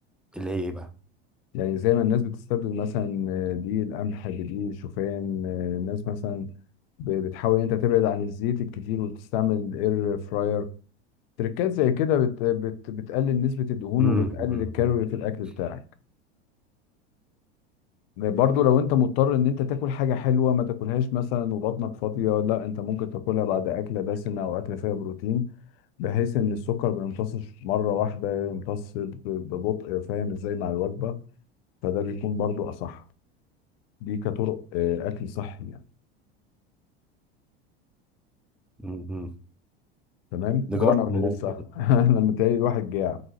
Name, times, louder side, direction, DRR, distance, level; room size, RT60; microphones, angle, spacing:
voice 1, 0.3-0.9 14.0-14.9 38.8-39.3 40.7-41.3, right 1 dB, 5° right, 0.5 m, -29 dB
voice 2, 1.5-6.5 7.0-10.7 11.4-15.8 18.2-25.5 26.0-31.2 31.8-33.0 34.0-35.8 40.3-43.2, left 9 dB, 65° left, 0.7 m, -26 dB
3.9 x 3.7 x 3.2 m
hypercardioid pair, 95°, 31 cm